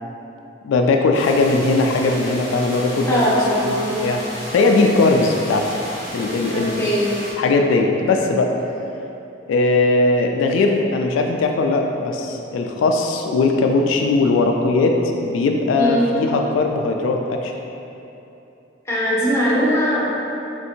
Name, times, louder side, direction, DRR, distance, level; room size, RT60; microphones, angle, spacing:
voice 1, 0.6-3.2 3.6-4.2 4.5-5.7 6.1-6.9 7.4-8.5 9.5-17.5, left 3 dB, 85° left, 3 dB, 0.3 m, -19 dB
sound 1, 1.1-7.3, equal, 10° right, 0.9 m, -34 dB
voice 2, 3.1-4.0 6.5-7.1 15.8-16.1 18.9-20.1, equal, 15° left, -7 dB, 0.7 m, -20 dB
3.2 x 2.7 x 4.3 m, 2.9 s
head